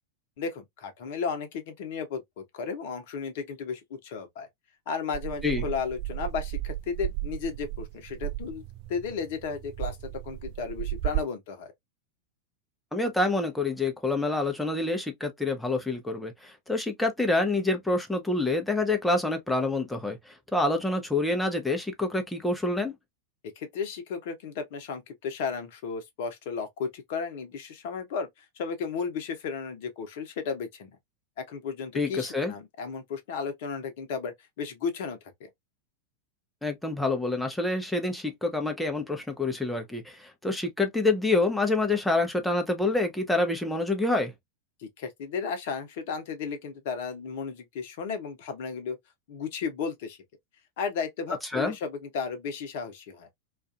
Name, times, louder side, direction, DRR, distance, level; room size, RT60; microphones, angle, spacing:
voice 1, 0.4-4.5 4.9-8.6 8.9-11.7 23.6-30.9 31.5-35.5 44.8-49.0 49.3-50.2 50.8-53.3, left 5 dB, 50° left, 0.8 m, -34 dB
sound 1, 5.1-11.2, right 17 dB, 40° right, 0.5 m, -34 dB
voice 2, 12.9-22.9 31.9-32.5 36.6-44.3 51.5-51.7, left 2 dB, 5° left, 0.7 m, -27 dB
2.4 x 2.4 x 2.4 m
figure-of-eight pair, 90°, 0 cm